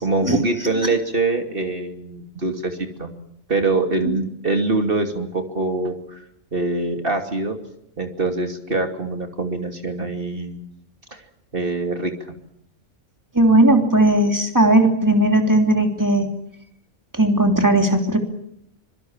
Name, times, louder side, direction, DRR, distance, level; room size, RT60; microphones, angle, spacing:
voice 1, 0.0-3.1 3.5-6.2 6.5-7.6 8.0-10.6 11.1-11.2 11.5-12.1, right 2 dB, 40° right, 5 dB, 2.9 m, -24 dB
voice 2, 13.3-16.3 17.1-18.2, right 1 dB, 15° right, 4 dB, 3.2 m, -17 dB
25.5 x 23.0 x 7.4 m, 0.72 s
omnidirectional pair, 1.4 m